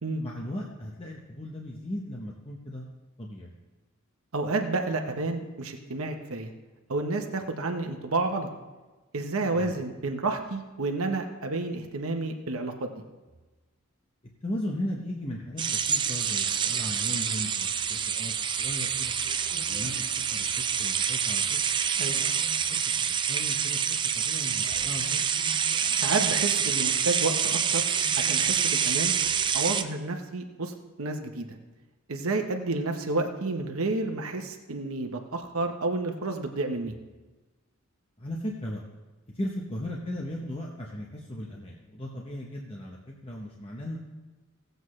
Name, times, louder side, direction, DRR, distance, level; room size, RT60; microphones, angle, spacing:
voice 1, 0.2-2.9 3.2-3.5 9.5-9.7 14.4-19.1 19.7-21.6 22.2-22.3 22.7-23.8 24.1-25.2 38.2-38.8 39.3-44.0, left 1 dB, 25° left, -2 dB, 1.0 m, -37 dB
voice 2, 4.3-6.5 6.9-8.5 9.1-13.0 22.0-22.2 26.0-27.8 28.2-29.1 29.5-31.5 32.1-36.9, right 3 dB, 75° right, 4 dB, 1.0 m, -30 dB
sound 1, 15.6-29.8, right 7 dB, 20° right, 0.3 m, -27 dB
17.5 x 7.9 x 3.2 m, 1.2 s
head